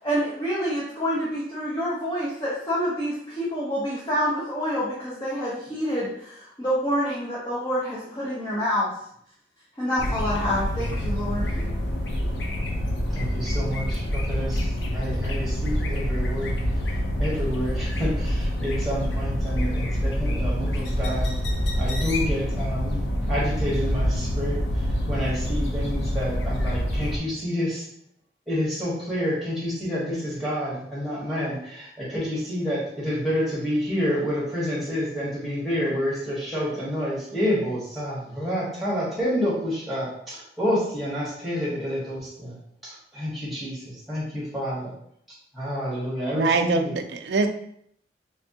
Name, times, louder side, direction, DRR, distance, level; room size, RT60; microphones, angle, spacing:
voice 1, 0.0-8.9 9.8-11.7, equal, 20° left, -8 dB, 0.7 m, -27 dB
sound 1, 10.0-27.2, equal, 75° left, 0.6 m, -26 dB
voice 2, 13.1-21.3 21.8-27.9 28.5-42.5 42.8-44.9 45.5-46.9, equal, ahead, -7 dB, 1.4 m, -29 dB
voice 3, 46.3-47.5, right 4 dB, 70° right, 7 dB, 0.4 m, -23 dB
3.5 x 3.3 x 2.8 m, 0.68 s
head